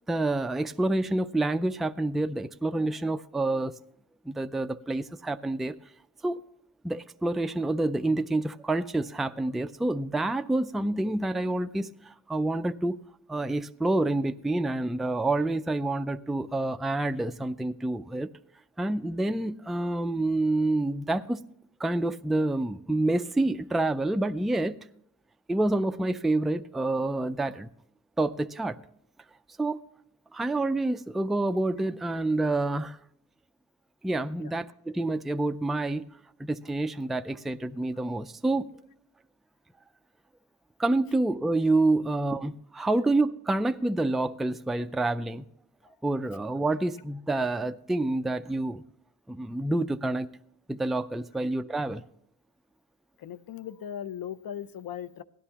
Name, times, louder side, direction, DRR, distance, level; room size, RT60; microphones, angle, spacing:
voice 1, 0.1-3.7 4.3-5.7 6.2-6.5 6.8-13.0 13.3-18.3 18.8-21.4 21.8-24.8 25.5-27.7 28.2-28.8 29.6-29.8 30.3-33.0 34.0-36.0 36.4-38.7 40.8-45.4 46.0-48.8 49.3-50.3 50.7-52.0, right 2 dB, ahead, 0.3 m, -28 dB
voice 2, 53.2-55.2, left 9 dB, 80° left, 0.6 m, -38 dB
16.5 x 11.0 x 2.8 m
cardioid pair, 85°, 34 cm